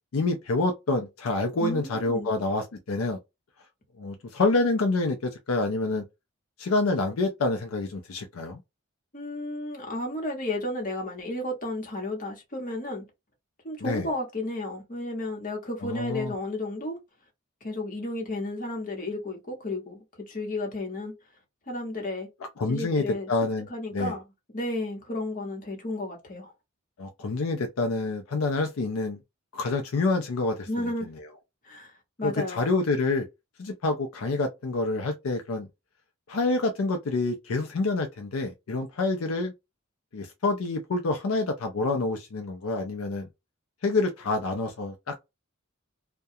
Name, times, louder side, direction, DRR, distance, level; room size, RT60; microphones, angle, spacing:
voice 1, 0.1-3.2 4.0-6.0 6.6-8.6 13.8-14.0 15.8-16.3 22.6-23.7 23.9-24.1 27.0-29.2 29.5-30.7 32.2-33.3 33.6-35.7 36.3-39.5 40.1-43.3 43.8-45.1, left 3 dB, 80° left, 0.5 m, -27 dB
voice 2, 1.6-2.3 9.1-13.0 13.6-17.0 17.6-21.1 21.7-22.3 22.7-23.3 23.7-24.2 24.5-26.5 30.7-31.1 31.6-31.9 32.2-32.7, left 2 dB, 40° left, 1.0 m, -33 dB
2.3 x 2.2 x 2.6 m
head